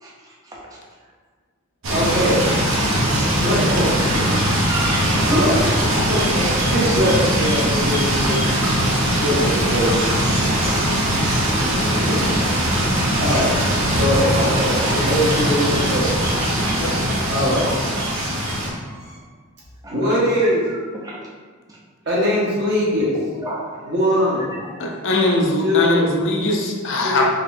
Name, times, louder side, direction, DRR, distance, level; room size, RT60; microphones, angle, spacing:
sound 1, 1.8-18.7, right 1 dB, 70° right, 0.8 m, -20 dB
voice 1, 1.9-4.2 5.2-5.6 6.1-8.6 9.2-12.4 12.7-13.6 13.9-16.4 17.3-17.7 18.1-18.4 18.7-19.2 19.9-20.7 22.0-23.2 23.8-24.6 25.6-26.2 27.0-27.2, equal, 55° right, -6 dB, 1.2 m, -23 dB
voice 2, 4.4-6.0 6.3-6.4 19.8-19.9 21.0-21.2 23.4-23.8 24.9-25.0, right 1 dB, 15° right, -4 dB, 0.6 m, -27 dB
voice 3, 24.8-27.2, left 2 dB, 60° left, 0 dB, 0.6 m, -20 dB
4.4 x 3.0 x 2.6 m, 1.5 s
head